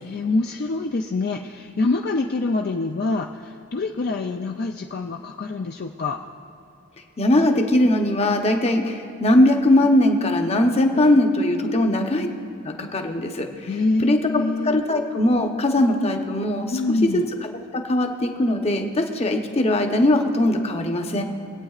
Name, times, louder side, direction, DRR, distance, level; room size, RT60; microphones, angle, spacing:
voice 1, 0.0-6.2 10.9-11.1 11.6-11.9 13.7-14.8 16.7-17.3, left 3 dB, 50° left, 3 dB, 0.4 m, -25 dB
voice 2, 7.2-12.3 12.6-13.7 14.0-17.1 17.7-21.2, left 1 dB, 30° left, 4 dB, 0.8 m, -20 dB
24.5 x 8.8 x 2.4 m, 2.8 s
head